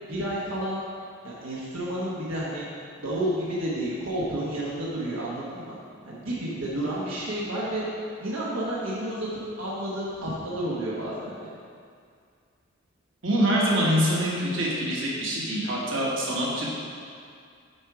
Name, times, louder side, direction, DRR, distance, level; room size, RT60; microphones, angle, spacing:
voice 1, 0.0-0.8 1.2-2.6 3.0-5.8 6.0-7.9 8.2-11.5, right 1 dB, 85° right, -7 dB, 1.1 m, -31 dB
voice 2, 13.2-16.7, equal, 65° right, -5 dB, 1.4 m, -25 dB
7.2 x 4.7 x 4.8 m, 2.2 s
head